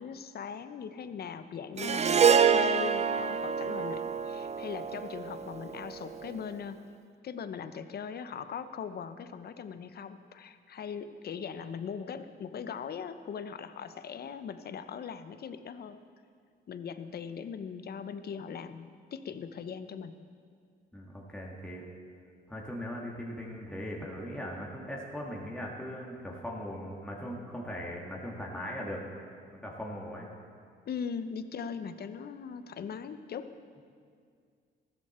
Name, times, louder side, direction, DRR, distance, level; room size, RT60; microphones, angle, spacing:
voice 1, 0.0-6.8 7.2-16.0 16.7-20.1 30.9-33.5, left 7 dB, 55° left, 11 dB, 0.8 m, -40 dB
Harp, 1.8-6.2, right 6 dB, 35° right, 0.5 m, -27 dB
voice 2, 20.9-21.8 22.5-29.0 29.5-30.3, equal, 5° left, -3 dB, 2.0 m, -39 dB
15.0 x 13.0 x 4.4 m, 2.1 s
cardioid pair, 90°, 20 cm